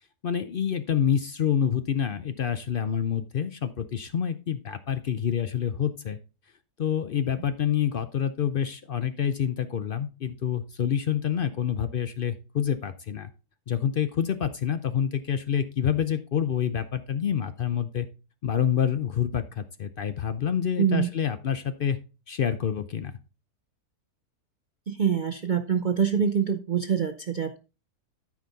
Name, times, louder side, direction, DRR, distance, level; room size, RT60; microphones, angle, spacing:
voice 1, 0.2-6.2 6.8-13.3 13.7-18.1 18.4-22.0 22.3-23.1, left 8 dB, 65° left, 11 dB, 0.5 m, -27 dB
voice 2, 20.8-21.1 24.9-27.6, right 7 dB, 85° right, 9 dB, 0.4 m, -25 dB
12.5 x 5.0 x 4.0 m, 0.32 s
omnidirectional pair, 1.7 m